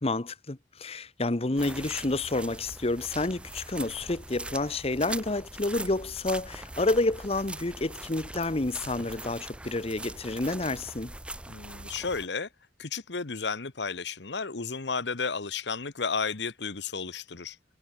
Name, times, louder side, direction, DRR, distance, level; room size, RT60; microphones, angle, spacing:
voice 1, 0.0-11.1, left 2 dB, 35° left, 1.0 m, -29 dB
sound 1, 1.6-12.3, right 2 dB, 5° right, 0.7 m, -41 dB
voice 2, 11.5-12.5 12.8-17.6, left 5 dB, 75° left, 1.2 m, -33 dB
head